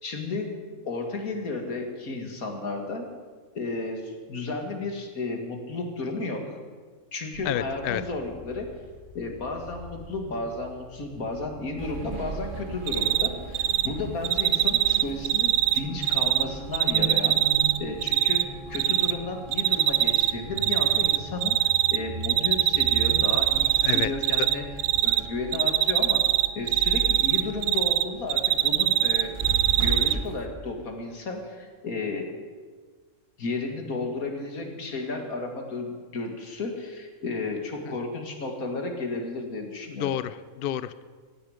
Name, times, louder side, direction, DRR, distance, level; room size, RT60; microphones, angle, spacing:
voice 1, 0.0-0.6 0.8-3.1 3.6-6.6 7.1-8.7 9.1-17.4 17.8-24.7 25.0-26.3 26.5-29.3 29.8-32.3 33.4-40.1, left 3 dB, 90° left, 4 dB, 2.6 m, -33 dB
sound 1, 7.3-12.7, left 4 dB, 30° left, 1.6 m, -48 dB
voice 2, 7.4-8.0 23.8-24.1 24.4-24.5 39.9-41.0, left 11 dB, 55° left, 15 dB, 0.6 m, -29 dB
sound 2, 11.8-30.5, right 3 dB, 40° right, 1.6 m, -37 dB
Cricket, 12.9-13.3 13.5-13.9 14.2-16.4 16.7-18.4 18.7-19.1 19.5-20.3 20.6-22.0 22.2-24.5 24.8-25.2 25.5-28.0 28.3-30.1, right 13 dB, 75° right, 1.0 m, -21 dB
17.0 x 16.5 x 5.1 m, 1.5 s
omnidirectional pair, 1.5 m